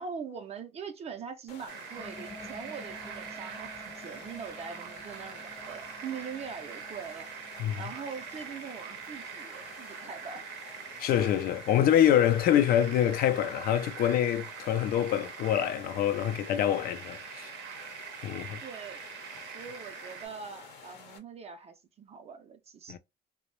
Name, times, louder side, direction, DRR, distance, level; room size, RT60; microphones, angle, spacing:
voice 1, 0.0-7.5 7.8-10.5 18.6-19.1 19.5-23.0, right 6 dB, 40° right, 0.4 m, -42 dB
sound 1, 1.5-21.2, left 5 dB, 90° left, 0.8 m, -51 dB
sound 2, 1.7-20.3, right 8 dB, 90° right, 0.6 m, -44 dB
sound 3, 1.9-13.7, left 1 dB, 20° left, 0.6 m, -52 dB
voice 2, 11.0-17.5 18.2-18.6 22.9-23.0, left 10 dB, 65° left, 0.4 m, -25 dB
2.5 x 2.0 x 3.0 m
cardioid pair, 110°, 17 cm